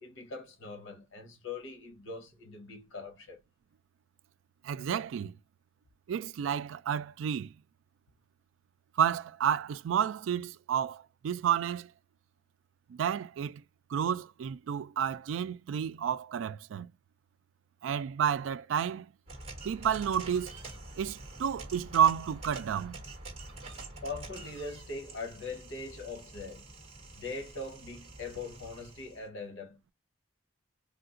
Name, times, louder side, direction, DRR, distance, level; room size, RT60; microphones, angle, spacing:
voice 1, 0.0-3.4 24.0-26.7 27.2-29.8, left 3 dB, 85° left, 1.1 m, -41 dB
voice 2, 4.6-5.4 6.1-7.5 9.0-11.9 12.9-13.6 13.9-16.9 17.8-19.1 19.6-20.5 21.0-23.0, right 8 dB, 80° right, 0.3 m, -30 dB
sound 1, 19.3-29.2, right 2 dB, 30° right, 1.2 m, -47 dB
3.6 x 2.4 x 2.4 m
head